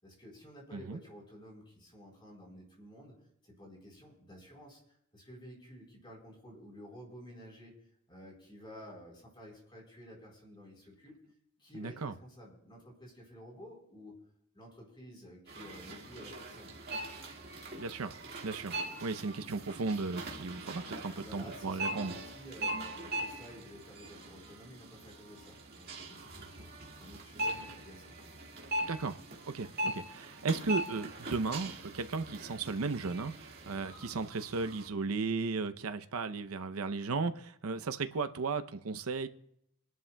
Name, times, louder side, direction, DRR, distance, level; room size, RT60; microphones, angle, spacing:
voice 1, 0.0-3.2 3.4-4.8 5.1-7.8 8.1-11.2 11.6-14.2 14.5-16.7 21.1-28.1, equal, 20° left, 3.9 m, -52 dB
voice 2, 11.7-12.1 17.8-18.1 18.4-22.1 28.8-29.2 29.5-39.3, right 4 dB, 85° right, 0.6 m, -35 dB
sound 1, 15.5-34.9, right 1 dB, 45° right, 1.8 m, -41 dB
26.5 x 11.0 x 2.2 m
head